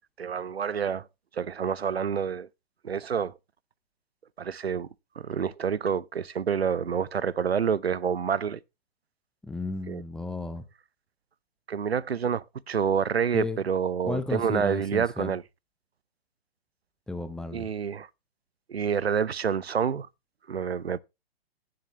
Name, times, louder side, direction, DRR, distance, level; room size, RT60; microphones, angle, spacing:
voice 1, 0.2-1.1 1.3-2.5 2.8-3.3 4.4-4.9 5.2-8.6 9.9-10.0 11.7-15.4 17.5-18.1 18.7-20.1 20.5-21.0, right 7 dB, 85° right, 0.6 m, -28 dB
voice 2, 9.4-10.6 13.3-13.6 14.0-15.4 17.1-17.7, left 2 dB, ahead, 0.5 m, -33 dB
15.5 x 7.6 x 2.9 m
figure-of-eight pair, 120°, 31 cm